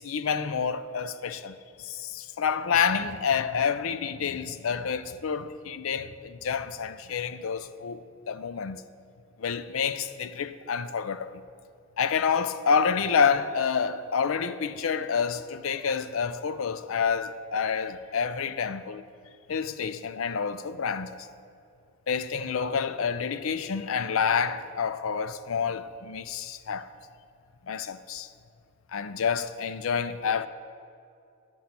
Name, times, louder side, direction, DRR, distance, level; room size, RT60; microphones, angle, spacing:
voice 1, 0.0-8.0 8.3-8.8 9.4-11.4 12.0-19.0 19.5-21.3 22.1-26.9 27.7-28.3 28.9-30.5, left 6 dB, 65° left, 0.5 m, -28 dB
11.0 x 5.9 x 7.1 m
head